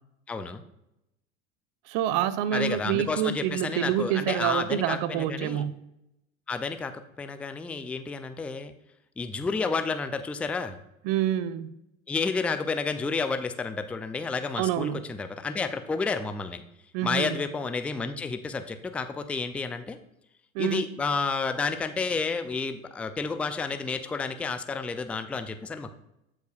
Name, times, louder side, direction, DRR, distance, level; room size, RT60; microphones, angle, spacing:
voice 1, 0.3-0.6 2.5-5.6 6.5-8.7 9.2-10.8 12.1-16.6 17.0-20.0 20.6-25.9, left 4 dB, 5° left, 9 dB, 0.3 m, -30 dB
voice 2, 1.9-5.7 11.0-11.7 14.6-15.1 16.9-17.4 20.5-20.9, right 11 dB, 50° right, 14 dB, 0.8 m, -27 dB
14.0 x 4.9 x 2.4 m, 0.85 s
hypercardioid pair, 80°, 41 cm